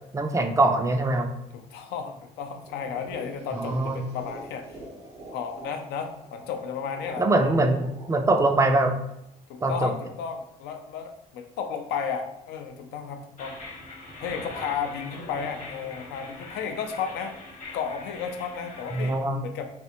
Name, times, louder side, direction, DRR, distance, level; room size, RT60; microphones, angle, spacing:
voice 1, 0.1-1.3 3.6-4.0 7.2-8.9 9.6-9.9 18.9-19.4, right 2 dB, 20° right, 5 dB, 0.3 m, -23 dB
voice 2, 1.5-4.8 5.3-7.3 9.5-13.6 14.2-17.4 17.7-19.7, left 6 dB, 85° left, 5 dB, 0.5 m, -33 dB
sound 1, 2.7-9.5, right 1 dB, 90° right, 0.9 m, -46 dB
sound 2, 13.4-19.2, left 2 dB, 45° left, 0.9 m, -42 dB
3.3 x 2.5 x 2.9 m, 0.82 s
cardioid pair, 110°, 17 cm